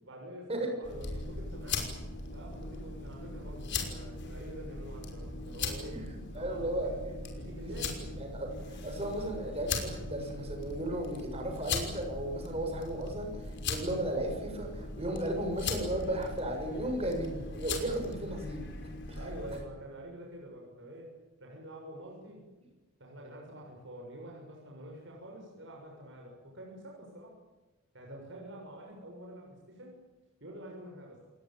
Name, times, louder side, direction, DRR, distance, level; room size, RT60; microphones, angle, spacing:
voice 1, 0.0-1.9 2.3-6.0 6.3-7.0 7.4-8.1 19.2-21.1 21.4-22.4 23.0-27.3 27.9-30.0 30.4-31.2, right 1 dB, 55° right, -1 dB, 6.8 m, -47 dB
sound 1, 0.8-19.6, left 3 dB, 50° left, 5.7 m, -39 dB
voice 2, 6.3-6.9 7.6-18.7 19.1-19.2, right 1 dB, 25° right, 3 dB, 6.8 m, -35 dB
29.0 x 19.0 x 9.2 m, 1.2 s
head